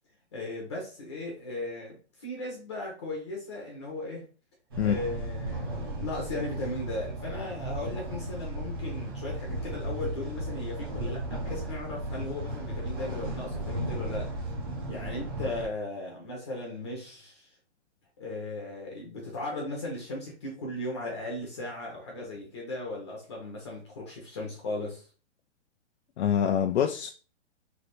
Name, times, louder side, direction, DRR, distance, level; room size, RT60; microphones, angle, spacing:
voice 1, 0.3-4.3 4.8-17.5 18.2-25.0, left 2 dB, 25° left, 0.7 m, -37 dB
sound 1, 4.7-15.7, right 1 dB, 20° right, 0.6 m, -35 dB
voice 2, 26.2-27.1, left 9 dB, 65° left, 0.5 m, -25 dB
3.3 x 2.6 x 4.1 m
hypercardioid pair, 170°, 35 cm